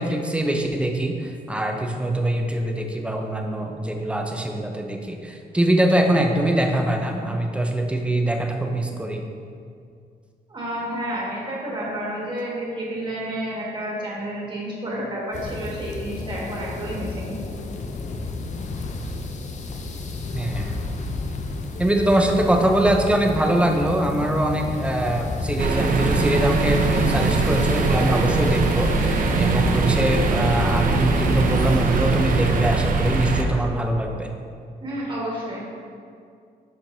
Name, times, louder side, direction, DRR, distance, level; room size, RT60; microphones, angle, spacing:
voice 1, 0.0-9.2 20.3-20.8 21.8-34.3, right 1 dB, 5° right, 2 dB, 0.6 m, -23 dB
voice 2, 10.5-17.3 34.8-35.6, right 1 dB, 30° right, -5 dB, 1.7 m, -30 dB
sound 1, 15.3-31.8, left 3 dB, 45° left, 0.5 m, -32 dB
sound 2, 23.7-26.9, left 1 dB, 70° right, 1.5 m, -34 dB
sound 3, 25.6-33.4, right 3 dB, 55° right, 0.6 m, -21 dB
11.5 x 4.5 x 2.7 m, 2.3 s
cardioid pair, 140°, 17 cm